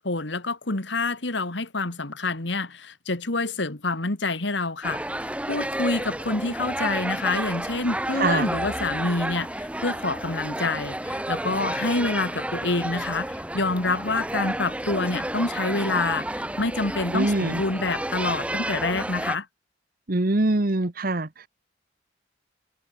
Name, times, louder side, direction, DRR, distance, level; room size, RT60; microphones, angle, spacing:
voice 1, 0.0-19.5, left 3 dB, 65° left, 2.2 m, -27 dB
sound 1, 4.8-19.4, right 1 dB, 5° right, 3.7 m, -31 dB
voice 2, 17.1-17.6 20.1-21.3, right 2 dB, 50° right, 1.2 m, -23 dB
head